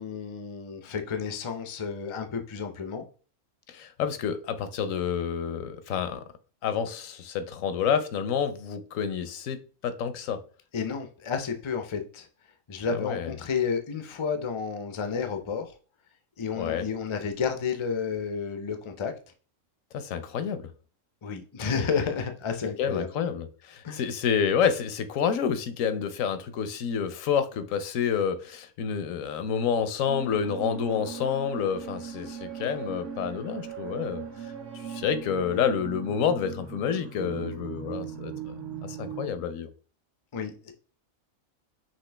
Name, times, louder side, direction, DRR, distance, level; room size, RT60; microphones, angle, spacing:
voice 1, 0.0-3.1 10.7-12.3 12.7-15.7 16.4-19.1 21.2-23.1 23.8-24.0 40.3-40.7, left 6 dB, 45° left, 0.4 m, -31 dB
voice 2, 3.7-6.2 6.6-10.4 12.9-13.3 16.6-16.8 19.9-20.6 22.8-34.2 34.8-38.5 38.8-39.7, left 7 dB, 80° left, 1.0 m, -29 dB
sound 1, 30.1-39.3, right 8 dB, 65° right, 1.5 m, -39 dB
5.9 x 2.6 x 3.3 m
omnidirectional pair, 1.4 m